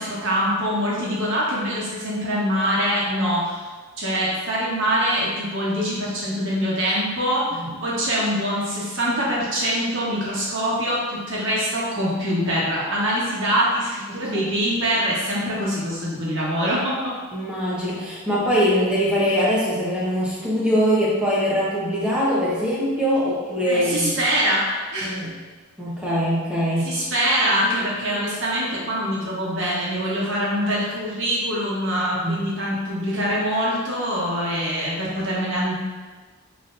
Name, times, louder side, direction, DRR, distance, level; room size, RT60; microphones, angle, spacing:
voice 1, 0.0-3.6 4.0-7.5 7.8-17.1 23.6-24.6 24.9-25.2 26.8-35.7, equal, 55° right, -6 dB, 1.3 m, -24 dB
voice 2, 17.3-24.2 25.0-25.3 25.8-26.9 32.2-32.5, equal, 5° right, -9 dB, 1.1 m, -22 dB
5.8 x 3.1 x 2.7 m, 1.4 s
head